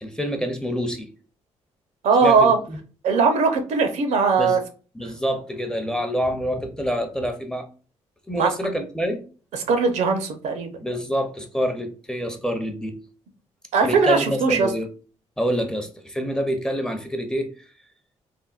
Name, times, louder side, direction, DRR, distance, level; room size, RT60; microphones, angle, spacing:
voice 1, 0.0-1.1 2.2-2.8 4.4-4.6 4.9-7.7 8.3-9.2 10.8-13.0 13.8-14.9 15.4-17.5, equal, 5° left, 5 dB, 0.5 m, -26 dB
voice 2, 2.0-2.6 3.0-4.6 8.4-8.5 9.5-10.8 13.7-14.7, right 4 dB, 75° right, 6 dB, 0.6 m, -19 dB
3.4 x 2.1 x 2.3 m, 0.38 s
cardioid pair, 105°, 12 cm